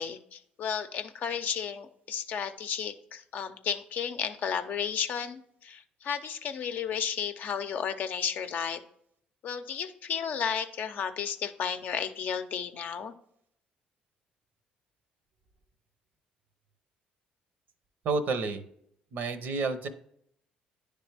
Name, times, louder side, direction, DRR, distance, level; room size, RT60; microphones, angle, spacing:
voice 1, 0.0-8.8 9.4-13.1, left 7 dB, 60° left, 8 dB, 0.6 m, -33 dB
voice 2, 18.0-18.6 19.1-19.9, right 4 dB, 65° right, 10 dB, 0.7 m, -30 dB
10.0 x 3.4 x 3.3 m, 0.70 s
supercardioid pair, 65°, 3 cm